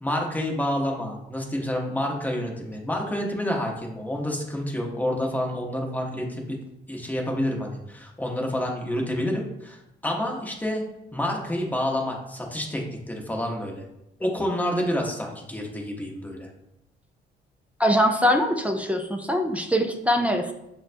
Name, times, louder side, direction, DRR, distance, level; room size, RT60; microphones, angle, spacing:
voice 1, 0.0-6.6 6.9-10.8 11.1-13.8 14.2-16.5, left 1 dB, 10° left, 0 dB, 0.8 m, -28 dB
voice 2, 17.8-20.5, equal, 5° right, 2 dB, 0.4 m, -22 dB
6.1 x 2.2 x 2.5 m, 0.87 s
cardioid pair, 90°, 20 cm